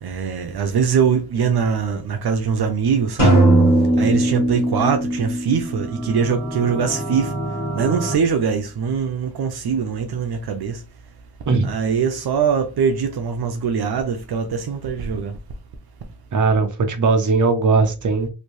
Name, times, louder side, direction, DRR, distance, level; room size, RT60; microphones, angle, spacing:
voice 1, 0.0-3.4 4.0-7.3 7.7-10.8 11.6-15.3, right 6 dB, 80° right, 0.6 m, -22 dB
sound 1, 3.2-7.0, right 1 dB, 55° left, 1.8 m, -19 dB
sound 2, 5.6-8.1, right 1 dB, 10° left, 1.4 m, -29 dB
voice 2, 16.3-18.3, right 4 dB, 50° right, 0.8 m, -18 dB
3.2 x 2.6 x 3.0 m
wide cardioid pair, 80°, 38 cm